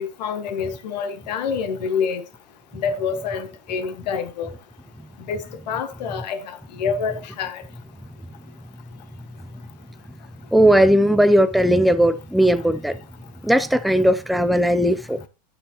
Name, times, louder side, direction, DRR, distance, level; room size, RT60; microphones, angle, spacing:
voice 1, 0.0-2.2 2.7-4.5 5.3-7.6, left 6 dB, 80° left, 1.5 m, -27 dB
voice 2, 10.5-13.0 13.4-15.3, equal, ahead, 0.3 m, -17 dB
9.9 x 6.8 x 2.9 m
supercardioid pair, 155°, 21 cm